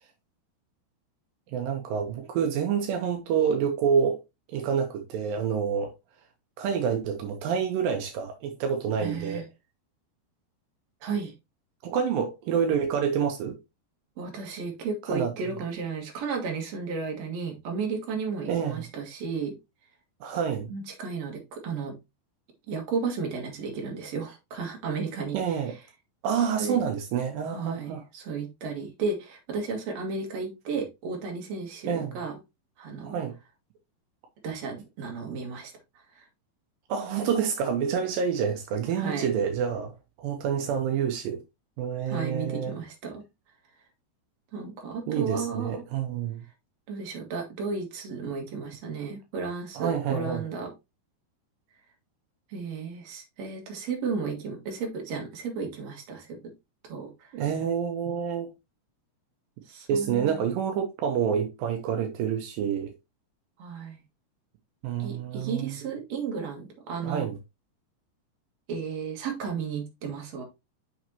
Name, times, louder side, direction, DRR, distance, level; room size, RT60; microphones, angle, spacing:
voice 1, 1.5-4.2 4.5-5.9 6.6-9.4 11.8-13.6 15.0-15.3 18.5-18.8 20.2-20.7 25.3-25.7 26.2-28.0 31.9-32.2 33.0-33.3 36.9-41.4 41.8-42.7 45.1-46.4 49.7-50.5 57.3-58.5 59.9-62.9 64.8-65.9 67.0-67.4, right 7 dB, 85° right, 2.0 m, -28 dB
voice 2, 9.0-9.4 11.0-11.3 14.2-19.5 20.7-21.9 22.7-25.6 26.6-26.8 27.5-32.4 32.8-33.1 34.4-35.7 36.1-36.2 39.0-39.3 42.1-43.2 44.5-45.8 46.9-50.7 52.5-56.4 56.9-57.1 59.7-60.4 63.6-64.0 65.0-67.3 68.7-70.4, right 5 dB, 50° right, 2.2 m, -33 dB
6.3 x 6.1 x 2.8 m
omnidirectional pair, 5.2 m